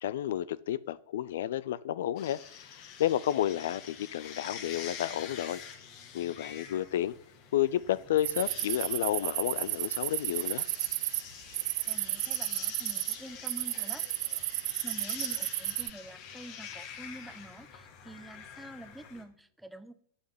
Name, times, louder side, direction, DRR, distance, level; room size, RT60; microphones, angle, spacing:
voice 1, 0.0-2.4 3.0-5.6 6.1-7.1 7.5-10.7, left 12 dB, 65° left, 0.4 m, -31 dB
sound 1, 2.2-19.2, left 7 dB, 45° left, 1.7 m, -46 dB
sound 2, 8.2-11.2 11.5-13.2 13.5-15.9, right 19 dB, 55° right, 0.3 m, -33 dB
voice 2, 11.9-14.0 14.8-19.9, right 1 dB, 5° right, 0.7 m, -47 dB
8.4 x 5.6 x 7.8 m
figure-of-eight pair, 95°, 0 cm